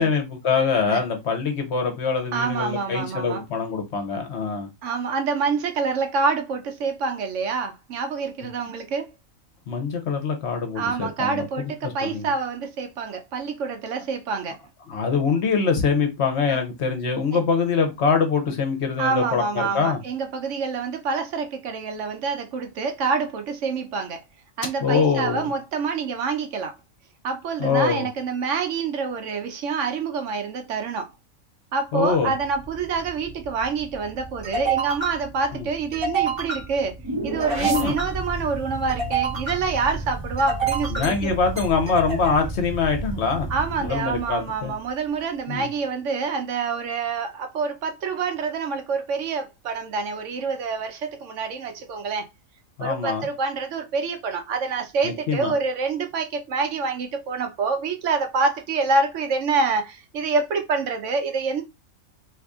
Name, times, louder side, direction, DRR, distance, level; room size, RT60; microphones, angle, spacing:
voice 1, 0.0-4.7 9.7-11.4 11.8-12.3 14.9-20.0 24.8-25.5 27.6-28.1 31.9-32.3 35.5-35.7 37.6-37.9 40.9-43.5 43.8-44.7 45.5-45.7 52.8-53.3 55.0-55.5, left 5 dB, 60° left, 0.9 m, -24 dB
voice 2, 2.3-3.4 4.8-9.1 10.7-14.6 16.5-16.6 19.0-24.2 24.6-26.7 27.2-31.1 31.7-37.0 37.2-41.3 43.5-52.3 52.8-61.6, right 4 dB, 70° right, 0.9 m, -27 dB
sound 1, 32.1-44.8, right 4 dB, 25° right, 0.6 m, -30 dB
2.7 x 2.6 x 3.5 m
omnidirectional pair, 1.4 m